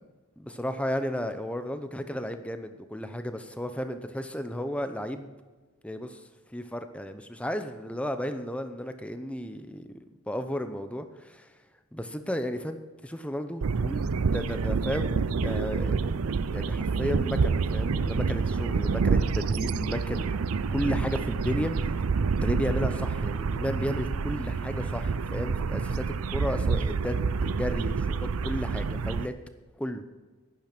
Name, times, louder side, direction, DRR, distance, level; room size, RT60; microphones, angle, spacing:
voice 1, 0.4-5.3 5.8-6.2 6.5-10.0 10.3-11.5 11.9-12.8 13.0-20.3 20.7-22.0 22.4-26.1 26.3-27.2 27.6-29.3 29.8-30.0, equal, 5° left, 8 dB, 0.7 m, -33 dB
sound 1, 13.6-29.3, right 5 dB, 85° right, 0.5 m, -28 dB
11.0 x 10.5 x 6.1 m, 1.3 s
head